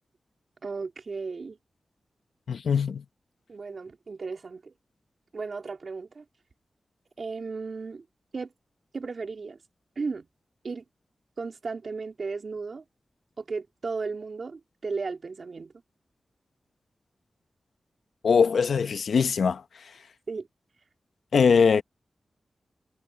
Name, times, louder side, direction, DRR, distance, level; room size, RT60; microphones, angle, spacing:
voice 1, 0.6-1.6 3.5-4.7 5.3-6.2 7.2-8.0 8.3-8.5 8.9-9.6 10.0-10.3 10.6-10.8 11.4-12.8 13.4-15.7 20.3-20.5, right 4 dB, 65° right, 2.8 m, -35 dB
voice 2, 2.5-3.0 18.2-19.6 21.3-21.8, left 6 dB, 85° left, 1.0 m, -21 dB
cardioid pair, 50°, 0 cm